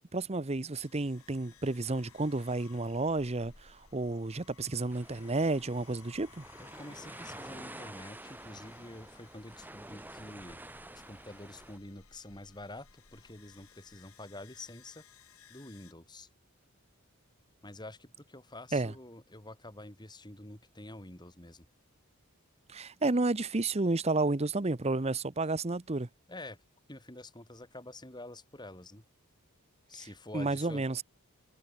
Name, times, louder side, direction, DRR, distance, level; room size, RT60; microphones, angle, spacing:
voice 1, 0.1-6.5 18.7-18.9 22.7-26.1 30.0-30.1 30.3-31.0, right 2 dB, 30° right, 0.8 m, -31 dB
sound 1, 0.8-15.9, left 6 dB, 70° left, 3.1 m, -59 dB
sound 2, 4.9-11.8, right 1 dB, 10° right, 2.2 m, -49 dB
voice 2, 6.6-10.6 10.9-15.0 15.5-16.3 17.6-21.7 26.3-26.6 26.9-29.0 29.9-30.8, left 2 dB, 20° left, 3.1 m, -47 dB
head